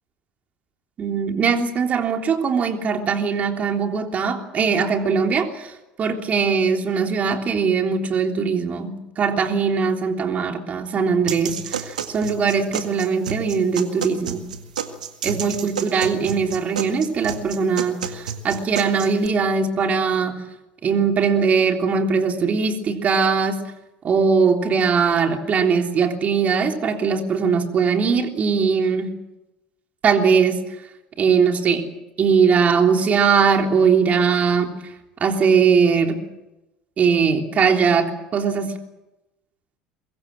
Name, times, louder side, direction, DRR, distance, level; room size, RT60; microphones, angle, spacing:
voice 1, 1.0-5.7 6.0-14.4 15.2-20.4 20.8-23.6 24.0-29.1 30.0-30.6 31.2-31.9 32.2-34.8 35.2-36.2 37.0-38.8, right 5 dB, 35° right, 4 dB, 3.4 m, -20 dB
sound 1, 11.3-19.3, right 7 dB, 80° right, 1.9 m, -31 dB
23.5 x 22.5 x 7.6 m, 0.99 s
figure-of-eight pair, 70°, 4 cm